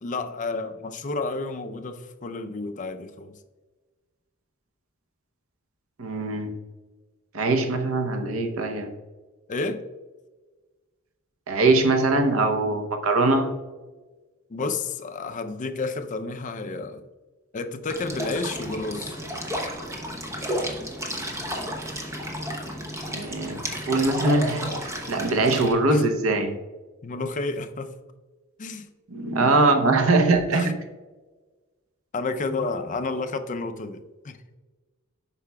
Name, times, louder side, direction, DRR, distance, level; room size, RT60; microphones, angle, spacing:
voice 1, 0.0-3.4 9.5-9.9 14.5-17.1 17.5-19.2 25.9-26.0 27.0-28.0 28.6-28.9 30.5-30.7 32.1-34.4, left 3 dB, 40° left, 0.5 m, -31 dB
voice 2, 6.0-6.5 7.3-8.9 11.5-13.5 22.4-22.7 23.1-23.6 23.9-24.8 25.1-26.6 29.1-30.8, right 2 dB, 80° right, 0.8 m, -22 dB
sound 1, 17.9-25.7, equal, 15° right, 0.9 m, -32 dB
8.2 x 5.8 x 2.2 m
head